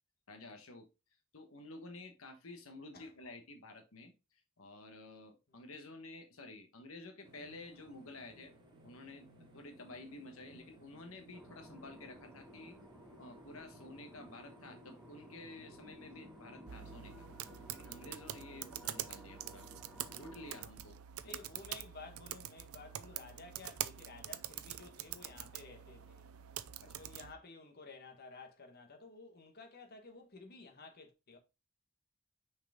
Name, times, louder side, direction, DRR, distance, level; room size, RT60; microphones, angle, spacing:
voice 1, 0.3-0.9 1.3-8.5 8.8-12.8 13.2-19.7 20.1-21.0 21.2-21.5 26.8-27.0, left 2 dB, 70° left, 1.2 m, -52 dB
sound 1, 7.2-17.8, right 1 dB, 25° right, 2.2 m, -60 dB
sound 2, 11.3-20.7, equal, ahead, 1.0 m, -56 dB
sound 3, 16.7-27.3, right 11 dB, 90° right, 0.5 m, -45 dB
voice 2, 21.2-26.3 26.8-31.4, left 3 dB, 45° left, 1.2 m, -53 dB
6.1 x 4.8 x 3.4 m
head